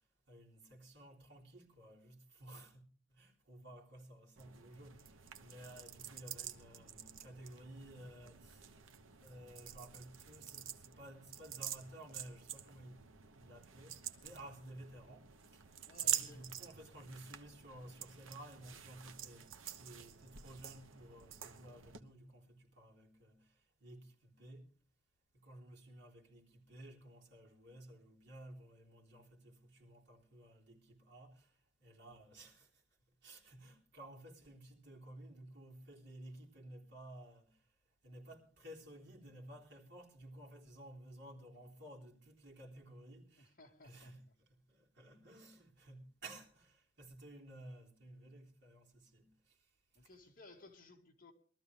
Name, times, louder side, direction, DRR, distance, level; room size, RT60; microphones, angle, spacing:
voice 1, 0.3-2.8 3.1-8.8 9.2-15.6 16.0-23.5 23.8-24.7 25.3-31.5 31.8-32.7 33.2-37.5 38.0-43.5 43.8-44.2 44.7-49.5, right 1 dB, 60° right, 3.6 m, -55 dB
sound 1, 4.4-22.0, right 9 dB, 80° right, 1.0 m, -47 dB
voice 2, 15.9-16.4 43.4-44.1 49.9-51.3, left 2 dB, 45° left, 2.3 m, -59 dB
22.0 x 13.5 x 3.4 m
head